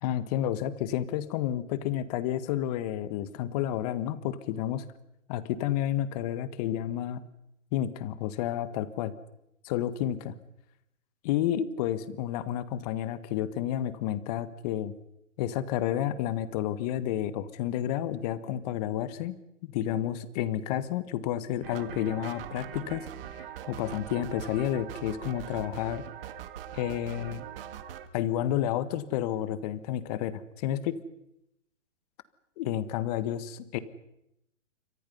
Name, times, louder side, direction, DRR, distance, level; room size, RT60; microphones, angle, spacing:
voice 1, 0.0-4.8 5.3-7.2 7.7-9.1 9.6-10.2 11.2-14.9 15.4-19.4 19.6-23.1 23.4-26.1 26.7-27.4 28.1-31.0 32.6-33.8, left 11 dB, 30° left, 14 dB, 1.6 m, -30 dB
sound 1, 21.6-28.1, right 10 dB, 45° right, 2.0 m, -42 dB
29.0 x 25.5 x 5.6 m, 0.81 s
hypercardioid pair, 150°, 39 cm